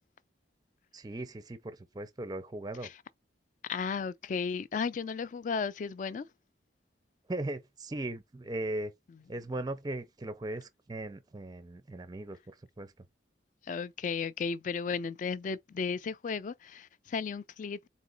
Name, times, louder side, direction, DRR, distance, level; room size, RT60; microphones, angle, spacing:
voice 1, 0.9-2.9 7.3-8.9 9.3-12.9, right 1 dB, 20° right, 0.4 m, -38 dB
voice 2, 3.7-6.3 13.6-17.8, left 5 dB, 45° left, 0.3 m, -34 dB
4.0 x 2.9 x 3.8 m
head